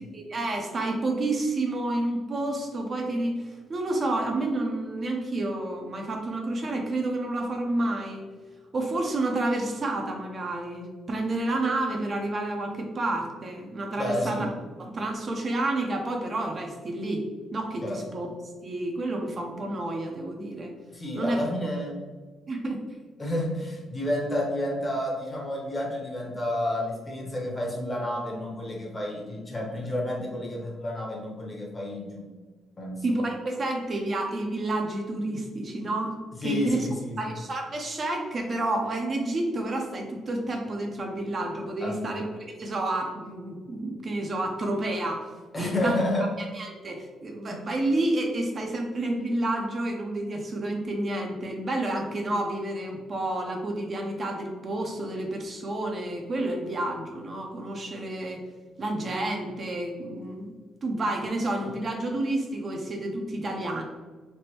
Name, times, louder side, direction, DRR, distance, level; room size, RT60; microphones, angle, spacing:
voice 1, 0.0-8.2 8.7-14.5 14.8-18.3 18.6-20.7 21.1-21.4 22.5-22.8 33.0-36.1 36.4-36.9 37.2-45.2 45.6-46.0 46.4-58.4 58.8-60.5 60.8-63.8, right 2 dB, 40° right, 2 dB, 0.5 m, -30 dB
voice 2, 14.0-14.5 17.8-18.0 20.9-22.0 23.2-32.3 32.8-33.0 36.4-37.2 41.8-42.1 45.5-46.3 47.5-47.6, left 1 dB, 25° left, -1 dB, 0.8 m, -30 dB
3.3 x 2.1 x 2.8 m, 1.4 s
cardioid pair, 90°, 0 cm